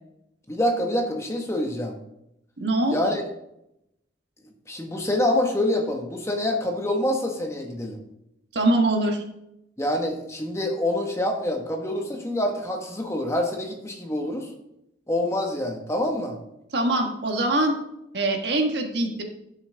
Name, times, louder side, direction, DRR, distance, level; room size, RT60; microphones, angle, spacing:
voice 1, 0.5-1.9 2.9-3.3 4.7-8.0 9.8-14.5 15.1-16.4, left 1 dB, 15° left, 2 dB, 1.2 m, -26 dB
voice 2, 2.6-3.0 8.5-9.2 16.7-17.7 18.1-19.2, right 2 dB, 65° right, 3 dB, 1.4 m, -23 dB
10.5 x 6.4 x 3.4 m, 0.83 s
head